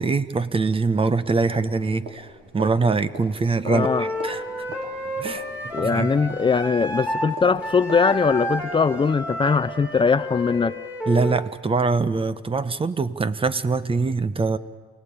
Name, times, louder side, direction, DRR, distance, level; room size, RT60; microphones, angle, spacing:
voice 1, 0.0-2.3 2.5-4.4 5.2-5.4 5.8-6.1 11.1-14.6, right 4 dB, 30° right, 14 dB, 1.2 m, -23 dB
sound 1, 1.3-11.9, right 2 dB, 70° right, 5.9 m, -43 dB
voice 2, 3.6-4.1 5.7-10.8, left 5 dB, 25° left, 15 dB, 0.7 m, -21 dB
Wind instrument woodwind instrument, 3.8-7.3 7.6-11.4, equal, 5° right, 5.3 m, -31 dB
28.0 x 18.5 x 8.8 m, 1.4 s
cardioid pair, 85°, 20 cm